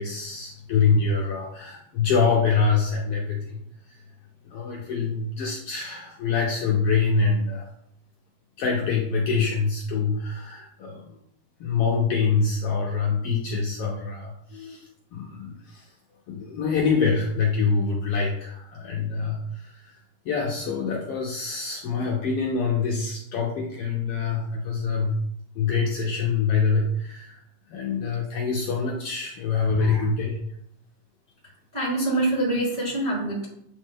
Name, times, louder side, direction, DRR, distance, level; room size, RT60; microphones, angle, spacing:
voice 1, 0.0-3.6 3.9-4.0 4.4-7.7 8.6-11.2 11.6-14.9 15.1-15.9 16.3-20.0 20.2-25.2 25.5-27.4 27.7-30.4, left 5 dB, 80° left, -2 dB, 1.3 m, -25 dB
voice 2, 31.7-33.5, right 2 dB, 35° right, -8 dB, 0.7 m, -25 dB
8.2 x 3.2 x 3.7 m, 0.73 s
omnidirectional pair, 3.5 m